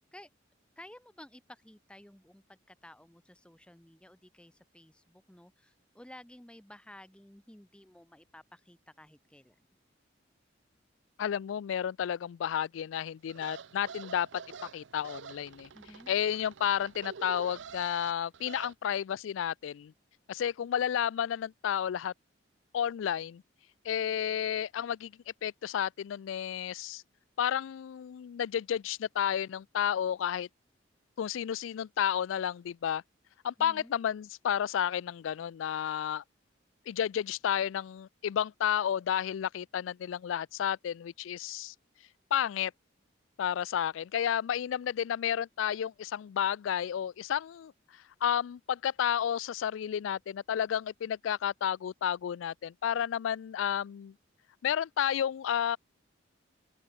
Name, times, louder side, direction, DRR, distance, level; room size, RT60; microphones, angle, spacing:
voice 1, 0.8-9.6 15.7-16.1 33.6-33.9, left 1 dB, 5° left, 0.7 m, -53 dB
voice 2, 11.2-14.3 14.7-15.7 16.1-19.9 20.3-22.1 22.7-23.4 23.8-25.1 25.4-27.0 27.4-30.5 31.2-33.0 33.4-36.2 36.9-41.7 42.3-42.7 43.4-54.1 54.6-55.8, left 9 dB, 85° left, 0.3 m, -31 dB
sound 1, 13.3-18.7, right 6 dB, 70° right, 0.6 m, -47 dB
open air
head